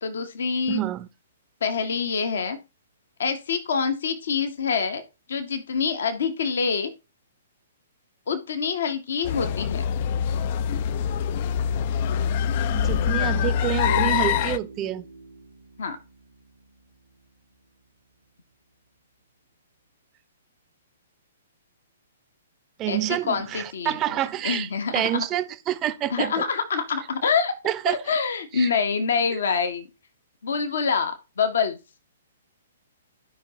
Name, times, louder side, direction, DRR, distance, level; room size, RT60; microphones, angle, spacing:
voice 1, 0.0-0.9 1.6-2.6 3.2-5.0 5.3-6.9 8.3-9.8 15.8-16.0 22.9-25.2 26.1-27.5 27.8-29.9 30.4-31.8, left 5 dB, 55° left, 1.0 m, -26 dB
voice 2, 0.7-1.1 12.7-15.0 22.8-26.4 27.6-28.0 28.5-28.7, right 13 dB, 25° right, 0.6 m, -28 dB
sound 1, 9.2-14.6, left 8 dB, 40° left, 0.4 m, -24 dB
sound 2, 13.8-17.3, right 4 dB, 75° right, 0.9 m, -40 dB
12.5 x 5.4 x 2.8 m
figure-of-eight pair, 120°, 0 cm